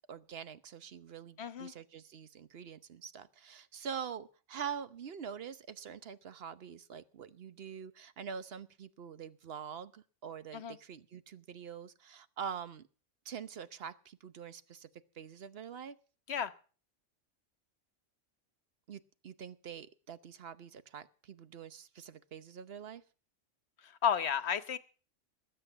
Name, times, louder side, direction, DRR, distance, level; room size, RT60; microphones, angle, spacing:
voice 1, 0.1-12.9 13.2-14.9 15.2-16.0 18.9-23.0, right 7 dB, 55° right, 14 dB, 1.1 m, -45 dB
voice 2, 1.4-1.7 10.5-10.8 16.3-16.5 23.8-24.8, left 8 dB, 60° left, 14 dB, 1.3 m, -32 dB
20.0 x 8.0 x 7.1 m, 0.39 s
omnidirectional pair, 1.3 m